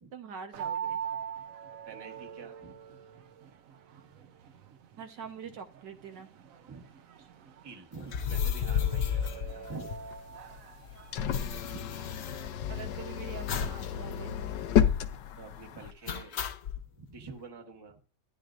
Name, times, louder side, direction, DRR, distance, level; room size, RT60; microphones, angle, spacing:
voice 1, 0.1-1.0 5.0-6.4 12.7-14.4, right 6 dB, 75° right, 5 dB, 1.7 m, -44 dB
sound 1, 0.5-12.4, right 8 dB, 60° right, 1.0 m, -43 dB
voice 2, 1.7-2.8 4.0-4.2 6.7-6.9 7.6-9.9 15.3-16.4 16.9-18.0, right 4 dB, 15° right, 2 dB, 1.0 m, -47 dB
sound 2, 8.0-10.3 10.6-10.7 10.9-13.0 13.5-13.9 14.2-14.3 14.7-15.1 16.1-16.8, left 8 dB, 60° left, 0.7 m, -33 dB
sound 3, 9.6-15.9, left 9 dB, 80° left, 1.3 m, -32 dB
13.5 x 10.0 x 2.5 m, 0.35 s
omnidirectional pair, 1.9 m